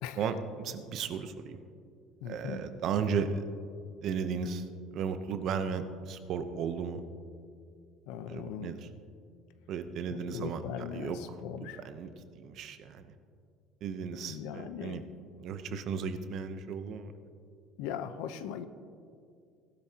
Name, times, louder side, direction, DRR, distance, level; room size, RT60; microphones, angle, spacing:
voice 1, 0.2-1.6 2.2-3.4 4.0-4.6 4.9-7.0 8.3-8.9 9.7-11.3 11.6-12.1 12.4-13.1 13.8-15.0 15.4-17.1, right 6 dB, 40° right, 9 dB, 0.8 m, -35 dB
voice 2, 2.2-2.6 8.1-8.7 10.1-11.8 14.3-15.0 17.8-18.7, left 8 dB, 75° left, 11 dB, 0.8 m, -39 dB
19.0 x 12.0 x 2.9 m, 2.3 s
cardioid pair, 170°, 0 cm